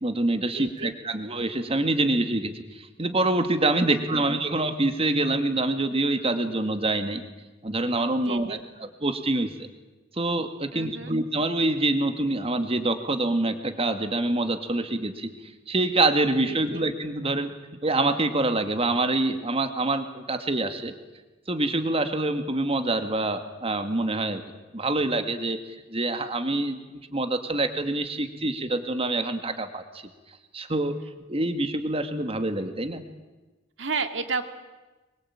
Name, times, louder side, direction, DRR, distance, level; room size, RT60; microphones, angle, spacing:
voice 1, 0.0-7.2 7.6-9.5 10.1-17.5 17.8-20.9 21.5-24.4 24.7-25.6 25.9-30.0 30.5-31.0 31.3-33.0, right 2 dB, 30° right, 8 dB, 2.1 m, -26 dB
voice 2, 0.5-1.0 3.9-4.3 8.2-8.6 10.7-11.2 16.5-16.8 33.8-34.4, right 4 dB, 70° right, 8 dB, 2.2 m, -32 dB
25.0 x 22.5 x 8.8 m, 1.2 s
head